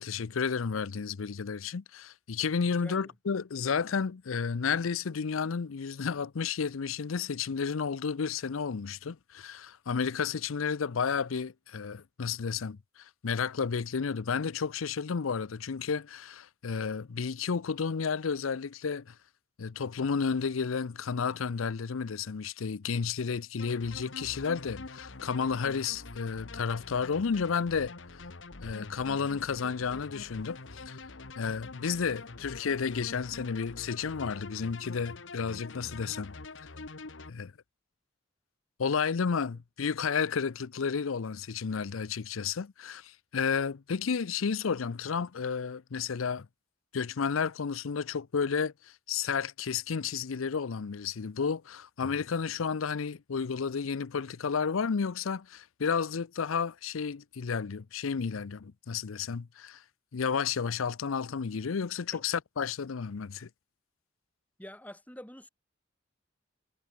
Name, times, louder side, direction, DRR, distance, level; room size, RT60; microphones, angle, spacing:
voice 1, 0.0-19.1 19.6-28.2 28.6-31.0 31.4-36.3 37.3-37.5 38.8-46.5 46.9-59.8 60.1-63.5, left 6 dB, 90° left, 0.6 m, -32 dB
voice 2, 2.8-3.1 62.1-62.2 64.6-65.5, equal, 10° left, 5.9 m, -46 dB
sound 1, 23.6-37.3, left 3 dB, 70° left, 1.4 m, -45 dB
head